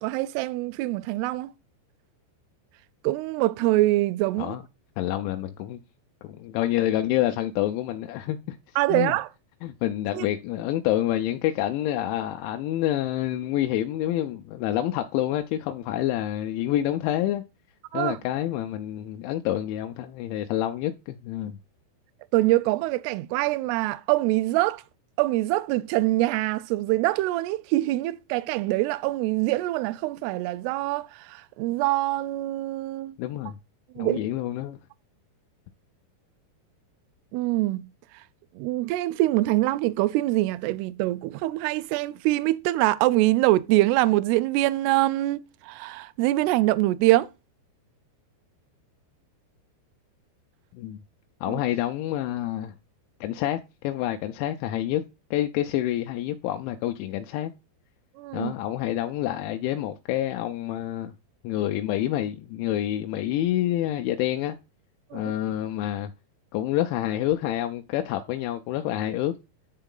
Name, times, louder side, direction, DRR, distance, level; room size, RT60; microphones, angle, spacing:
voice 1, 0.0-1.5 3.0-4.6 8.8-9.3 10.1-10.3 17.9-18.2 22.3-24.8 25.2-33.2 34.0-34.2 37.3-37.9 38.6-47.3 51.5-51.6 58.2-58.5 65.1-65.3, right 18 dB, 90° right, 2.3 m, -24 dB
voice 2, 5.0-5.8 6.2-8.6 8.9-9.1 9.6-17.4 17.9-21.6 33.2-33.6 34.0-34.8 50.8-51.0 51.4-52.7 53.2-55.0 55.3-57.5 58.3-61.1 61.4-64.6 65.1-66.1 66.5-69.3, left 13 dB, 85° left, 3.0 m, -27 dB
10.0 x 4.4 x 3.8 m
omnidirectional pair, 5.3 m